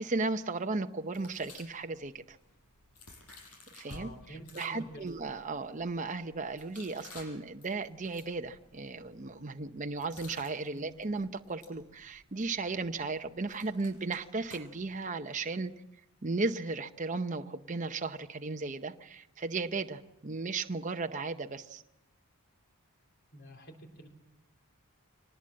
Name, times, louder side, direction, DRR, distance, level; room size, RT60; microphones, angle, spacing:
voice 1, 0.0-2.4 3.7-15.7 16.2-21.8, right 3 dB, 35° right, 7 dB, 0.7 m, -35 dB
sound 1, 1.1-4.0 4.4-15.0, left 3 dB, 90° left, 6.3 m, -56 dB
voice 2, 3.9-5.0 10.7-10.8 23.3-24.1, equal, 50° left, 3 dB, 4.0 m, -48 dB
24.5 x 19.0 x 7.5 m, 0.91 s
head